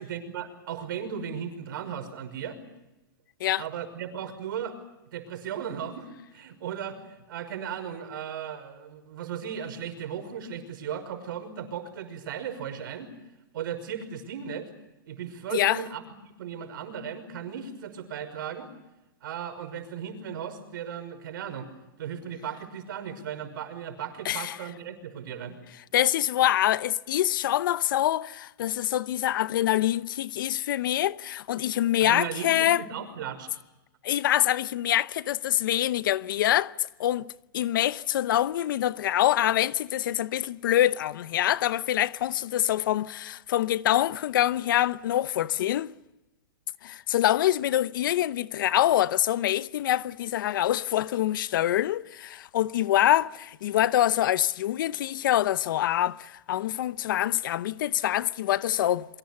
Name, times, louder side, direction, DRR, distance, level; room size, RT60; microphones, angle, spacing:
voice 1, 0.0-2.6 3.6-4.8 5.1-13.1 13.5-14.7 15.1-18.7 19.2-21.7 22.0-25.6 32.0-33.5, right 8 dB, 65° right, 5.8 m, -36 dB
voice 2, 15.5-15.8 24.2-24.5 25.9-32.8 34.0-36.7 37.0-37.3 37.5-45.9 46.8-59.1, left 12 dB, 65° left, 0.8 m, -25 dB
28.0 x 23.5 x 6.9 m
hypercardioid pair, 130°, 12 cm